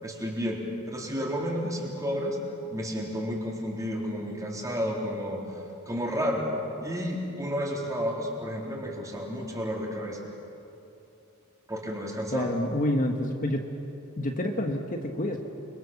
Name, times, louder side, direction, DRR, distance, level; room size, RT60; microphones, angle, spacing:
voice 1, 0.0-0.6 0.9-2.4 2.7-5.6 5.9-6.4 6.8-10.2 11.7-12.5, equal, 15° right, -1 dB, 3.9 m, -31 dB
voice 2, 12.3-13.7 14.2-15.4, left 1 dB, 40° left, 3 dB, 1.5 m, -28 dB
29.5 x 23.0 x 7.2 m, 2.8 s
head